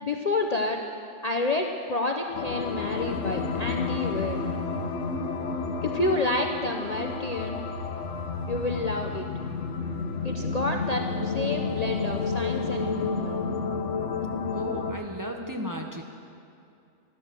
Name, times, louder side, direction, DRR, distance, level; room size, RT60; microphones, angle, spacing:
voice 1, 0.0-0.8 1.2-4.5 5.8-7.6 8.5-9.3 10.2-13.4, left 2 dB, 40° left, 2 dB, 0.7 m, -29 dB
sound 1, 2.3-14.9, left 4 dB, 65° left, 1.2 m, -30 dB
voice 2, 14.5-16.0, equal, 15° right, 2 dB, 0.9 m, -35 dB
14.0 x 12.5 x 6.7 m, 2.5 s
omnidirectional pair, 1.4 m